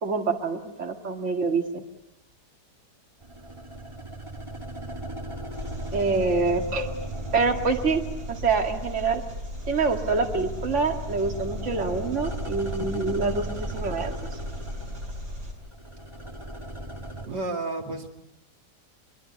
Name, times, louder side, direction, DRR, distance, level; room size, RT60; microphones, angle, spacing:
voice 1, 0.0-1.8 5.9-6.9 7.3-8.0 8.3-9.2 9.7-14.2, right 4 dB, 45° right, 3 dB, 2.5 m, -26 dB
sound 1, 3.2-9.1 9.4-17.3, right 1 dB, 15° right, 2.8 m, -38 dB
Engine, 5.5-15.5, equal, 75° right, 7.5 m, -36 dB
voice 2, 17.3-18.1, right 2 dB, 90° right, 3 dB, 3.1 m, -31 dB
24.5 x 23.0 x 9.5 m, 0.89 s
omnidirectional pair, 1.8 m